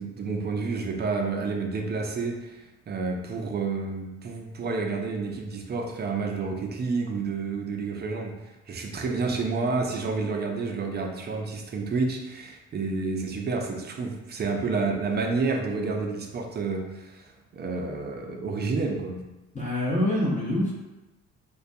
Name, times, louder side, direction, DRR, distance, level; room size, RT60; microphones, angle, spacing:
voice 1, 0.0-8.3 8.7-19.2, right 4 dB, 35° right, 2 dB, 0.4 m, -29 dB
voice 2, 19.5-20.7, left 1 dB, 25° left, -6 dB, 0.8 m, -25 dB
2.2 x 2.2 x 2.6 m, 1.0 s
cardioid pair, 90°, 30 cm